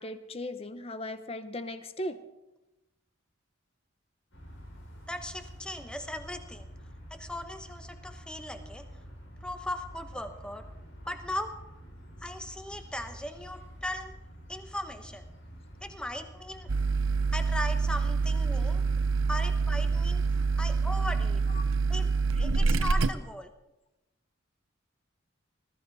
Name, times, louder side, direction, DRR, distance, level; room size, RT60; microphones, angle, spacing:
voice 1, 0.0-2.2 21.5-21.7, left 1 dB, 30° left, 10 dB, 0.9 m, -37 dB
sound 1, 4.3-21.1, equal, 75° left, 6.1 m, -48 dB
voice 2, 5.1-6.7 7.1-8.9 9.4-10.6 11.1-11.5 12.2-14.2 14.5-15.3 15.8-16.7 17.3-18.8 19.3-21.5 21.9-23.5, left 1 dB, 5° left, 7 dB, 1.0 m, -38 dB
sound 2, 16.7-23.1, right 4 dB, 80° right, 0.7 m, -26 dB
19.5 x 13.5 x 4.1 m, 0.99 s
head